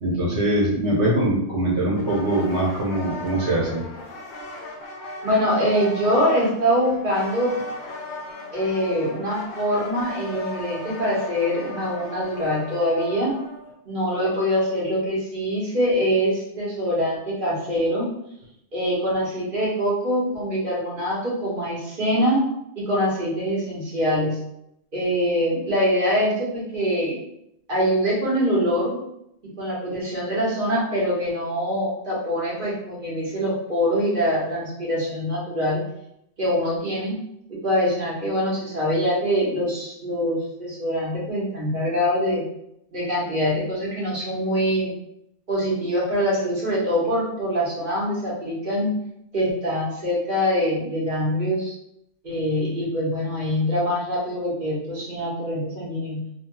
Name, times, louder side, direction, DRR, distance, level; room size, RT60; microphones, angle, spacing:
voice 1, 0.0-3.8, right 1 dB, 65° right, -4 dB, 1.4 m, -22 dB
sound 1, 2.0-13.7, left 2 dB, 50° left, 0.6 m, -37 dB
voice 2, 5.2-7.5 8.5-13.4 13.8-18.1 18.7-22.4 22.8-24.4 24.9-27.2 27.7-29.0 29.4-35.8 36.4-37.1 37.5-42.5 42.9-44.9 45.5-48.9 49.3-51.7 52.2-56.2, equal, 45° right, -6 dB, 1.2 m, -24 dB
3.0 x 2.2 x 2.9 m, 0.78 s
omnidirectional pair, 1.2 m